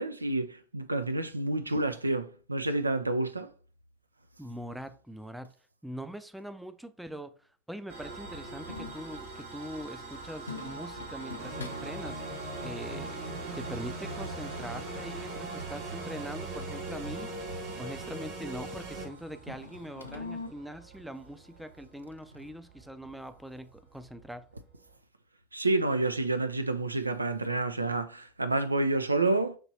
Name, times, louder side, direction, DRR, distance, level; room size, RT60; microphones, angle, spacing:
voice 1, 0.0-3.5 25.5-29.6, right 2 dB, 85° right, 0.3 m, -29 dB
voice 2, 4.4-5.5 5.8-12.2 12.6-13.2 13.6-24.4, equal, 5° right, 0.4 m, -42 dB
sound 1, 7.9-25.0, right 3 dB, 65° right, 2.5 m, -46 dB
sound 2, 8.2-20.5, left 4 dB, 85° left, 0.5 m, -48 dB
sound 3, 11.4-19.1, right 2 dB, 45° right, 1.4 m, -39 dB
5.9 x 3.1 x 2.7 m
figure-of-eight pair, 80°, 0 cm